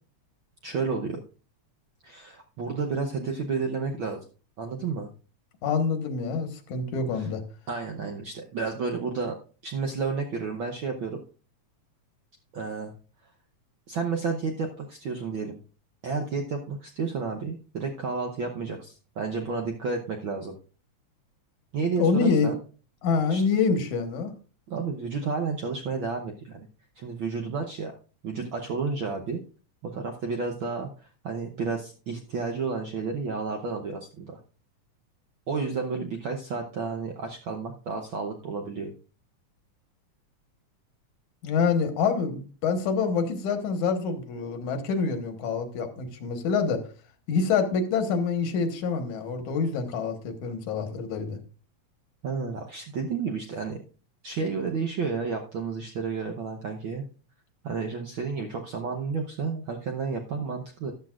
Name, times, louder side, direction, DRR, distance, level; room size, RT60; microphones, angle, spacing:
voice 1, 0.6-1.2 2.0-4.2 4.6-5.1 7.1-7.3 7.7-9.3 9.6-11.2 12.5-12.9 13.9-15.6 16.0-20.5 21.7-22.6 23.3-23.4 24.7-26.6 27.0-27.9 28.2-29.4 29.8-30.9 31.2-34.4 35.5-38.9 52.2-53.8 54.2-57.1 57.6-60.9, right 4 dB, 70° right, 2 dB, 1.2 m, -31 dB
voice 2, 5.6-7.4 22.0-22.5 23.0-24.3 41.4-46.8 47.3-51.4, left 5 dB, 80° left, 7 dB, 2.7 m, -26 dB
13.5 x 11.0 x 2.4 m, 0.36 s
omnidirectional pair, 3.4 m